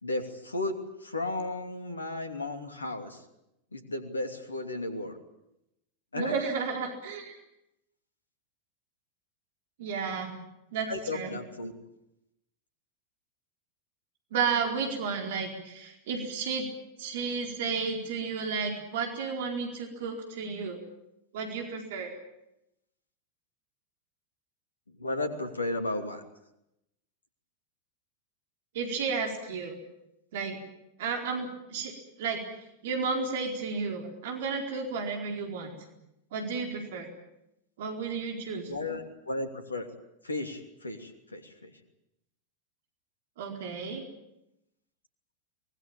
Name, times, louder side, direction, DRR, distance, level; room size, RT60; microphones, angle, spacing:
voice 1, 0.0-3.2 3.7-5.2 6.1-6.4 10.9-11.7 24.9-26.2 38.6-39.9 40.2-41.7, left 2 dB, 80° left, 8 dB, 2.9 m, -34 dB
voice 2, 6.1-7.4 9.8-10.3 10.7-11.3 14.3-16.7 17.0-20.8 21.3-22.1 28.7-29.7 30.3-30.6 31.0-31.9 32.2-32.4 32.8-35.7 36.3-37.1 37.8-38.6 43.4-44.0, right 5 dB, 55° right, 3 dB, 4.4 m, -32 dB
24.0 x 20.5 x 9.0 m, 0.83 s
figure-of-eight pair, 90°, 0 cm